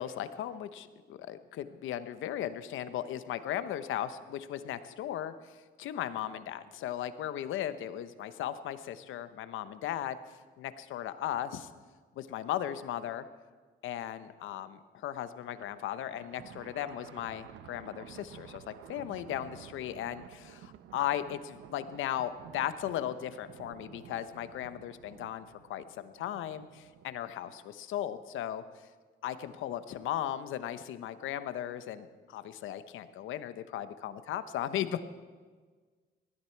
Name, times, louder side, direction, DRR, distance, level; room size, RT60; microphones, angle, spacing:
voice 1, 0.0-10.2 10.6-11.7 12.2-13.3 13.8-28.6 29.2-35.0, left 11 dB, 85° left, 12 dB, 0.9 m, -37 dB
Thunder, 15.4-27.2, right 11 dB, 85° right, 0.7 m, -52 dB
19.5 x 14.0 x 4.6 m, 1.5 s
cardioid pair, 90°, 20 cm